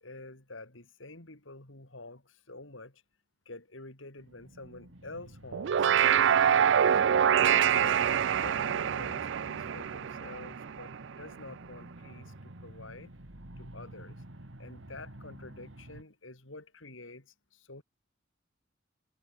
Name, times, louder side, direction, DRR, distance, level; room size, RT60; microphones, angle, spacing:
voice 1, 0.0-3.0 3.5-7.0 7.5-13.1 13.6-14.2 14.6-17.8, left 2 dB, 85° left, 4.1 m, -48 dB
sound 1, 4.2-16.0, right 1 dB, 80° right, 2.7 m, -49 dB
sound 2, 5.5-11.0, right 8 dB, 65° right, 0.4 m, -25 dB
head